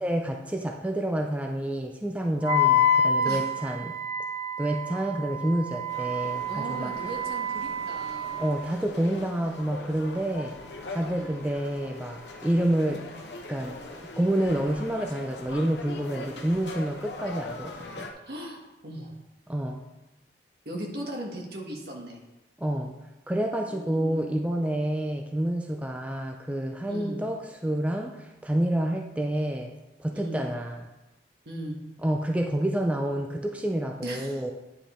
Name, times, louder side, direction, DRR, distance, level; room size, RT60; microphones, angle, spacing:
voice 1, 0.0-4.0 4.6-6.9 8.4-10.5 10.9-13.1 13.5-18.1 19.5-19.8 22.6-22.9 23.3-29.7 30.0-30.8 32.0-34.5, right 1 dB, 10° right, 2 dB, 0.4 m, -28 dB
Wind instrument woodwind instrument, 2.4-8.6, left 3 dB, 35° right, 0.9 m, -27 dB
sound 1, 5.9-18.1, left 2 dB, 80° left, 0.9 m, -42 dB
voice 2, 6.5-8.4 11.0-11.3 18.3-19.2 20.6-22.2 23.7-24.4 26.9-27.2 30.1-30.5 31.4-31.8 34.0-34.4, right 1 dB, 60° right, 0 dB, 1.6 m, -38 dB
9.7 x 5.1 x 4.3 m, 1.0 s
head